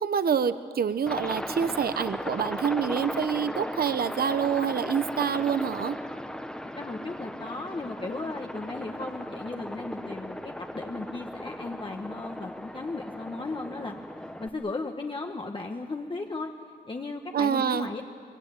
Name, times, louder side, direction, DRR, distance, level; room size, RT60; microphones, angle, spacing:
voice 1, 0.0-6.0 17.3-17.9, right 7 dB, 60° right, 12 dB, 0.9 m, -27 dB
Aircraft, 1.1-14.5, left 1 dB, 5° left, 1.2 m, -37 dB
voice 2, 6.8-14.0 14.4-16.5 16.8-18.0, left 3 dB, 30° left, 2 dB, 1.2 m, -36 dB
24.5 x 24.0 x 9.3 m, 2.2 s
wide cardioid pair, 140°, 18 cm